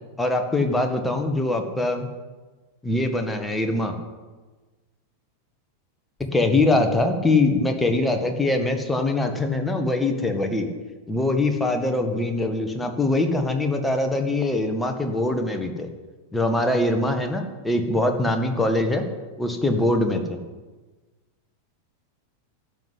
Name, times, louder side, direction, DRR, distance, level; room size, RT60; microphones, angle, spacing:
voice 1, 0.2-2.1 2.8-3.9 6.3-10.7 11.1-15.9 16.3-19.0 19.4-20.4, left 2 dB, 5° left, 4 dB, 1.8 m, -23 dB
13.0 x 7.8 x 9.9 m, 1.3 s
figure-of-eight pair, 90°, 0 cm